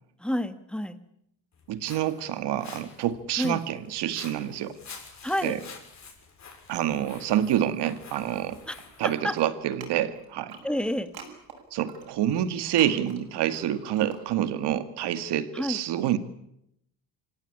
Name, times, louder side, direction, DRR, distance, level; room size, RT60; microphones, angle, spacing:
voice 1, 0.2-1.0 3.4-3.6 5.2-5.6 8.7-8.8 9.2-9.3 10.6-11.1 15.5-15.8, equal, ahead, 11 dB, 1.7 m, -28 dB
Walk footsteps, 1.5-9.2, left 5 dB, 45° left, 6.7 m, -48 dB
voice 2, 1.7-4.8 5.4-5.6 6.7-8.6 9.0-10.6 11.7-16.2, right 11 dB, 90° right, 11 dB, 1.9 m, -27 dB
sound 1, 7.3-8.9 9.1-14.7, right 6 dB, 70° right, 7.1 m, -46 dB
26.5 x 17.0 x 10.0 m, 0.77 s
cardioid pair, 125°, 39 cm